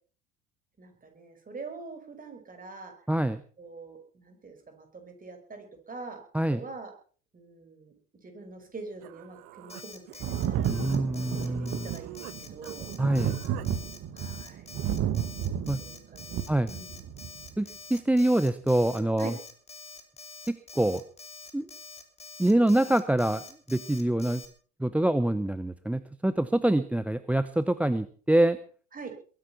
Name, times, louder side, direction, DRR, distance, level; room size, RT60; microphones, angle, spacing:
voice 1, 0.8-2.9 3.6-6.2 6.5-6.9 7.3-7.9 8.2-12.9 14.1-14.7 15.8-17.0 19.2-19.3 28.9-29.1, right 4 dB, 20° right, 6 dB, 5.5 m, -44 dB
voice 2, 3.1-3.4 6.3-6.6 10.7-11.9 13.0-13.4 15.7-15.8 16.5-16.7 17.6-19.3 20.5-21.0 21.5-21.7 22.4-23.4 23.7-24.4 24.8-28.6, right 1 dB, 5° right, 14 dB, 0.7 m, -25 dB
Human voice, 8.7-8.8 9.0-12.4 12.6-13.7, right 18 dB, 55° right, 1.2 m, -47 dB
Alarm, 9.7-24.5, left 4 dB, 15° left, 3.4 m, -46 dB
Thunder, 10.2-17.5 18.7-18.8, right 10 dB, 35° right, 1.5 m, -32 dB
22.0 x 11.0 x 5.8 m, 0.43 s
figure-of-eight pair, 70°, 39 cm